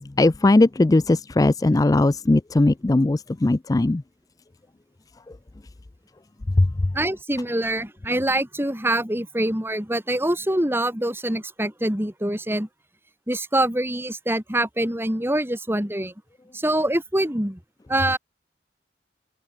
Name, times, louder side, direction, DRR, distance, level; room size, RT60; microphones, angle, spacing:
voice 1, 0.2-4.0 6.6-6.7, left 2 dB, 20° left, 0.4 m, -18 dB
voice 2, 6.9-12.7 13.3-16.1 16.5-17.6 17.9-18.2, right 1 dB, 15° right, 3.2 m, -24 dB
head